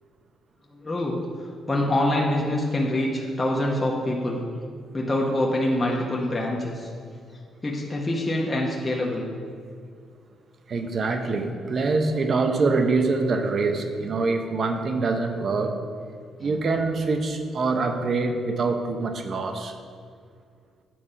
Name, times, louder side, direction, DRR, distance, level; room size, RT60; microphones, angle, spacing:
voice 1, 0.7-1.2 1.7-4.4 4.9-6.9 7.6-9.3 16.4-16.5, left 1 dB, 25° left, -2 dB, 0.8 m, -25 dB
voice 2, 10.7-15.7 16.4-19.7, right 3 dB, 50° right, 6 dB, 0.7 m, -24 dB
8.5 x 3.6 x 5.5 m, 2.2 s
cardioid pair, 90°, 0 cm